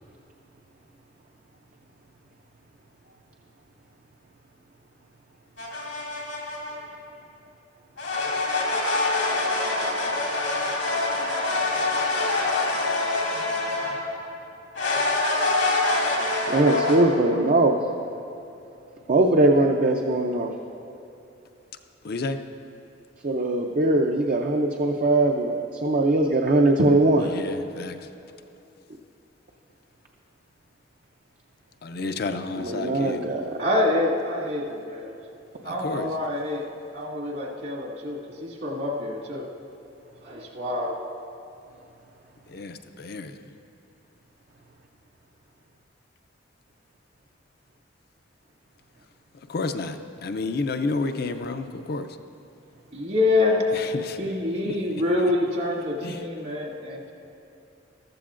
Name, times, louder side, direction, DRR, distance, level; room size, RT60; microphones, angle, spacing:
sound 1, 5.6-6.8 8.0-14.1 14.7-17.0, left 2 dB, 90° left, 2.3 m, -25 dB
voice 1, 16.5-17.8 19.1-20.5 23.2-25.5 25.8-27.3 32.6-33.6, right 2 dB, 45° right, 2 dB, 0.5 m, -21 dB
voice 2, 22.0-22.4 27.2-28.0 31.8-33.2 35.7-36.1 42.5-43.4 49.5-52.1 53.8-54.2 54.7-54.8 56.0-56.2, left 3 dB, 55° left, 7 dB, 0.5 m, -30 dB
voice 3, 33.6-35.2 35.6-36.7 36.9-39.5 40.2-41.0 52.9-53.7 54.2-57.1, left 2 dB, 65° right, -4 dB, 2.0 m, -26 dB
14.5 x 13.0 x 2.5 m, 2.8 s
head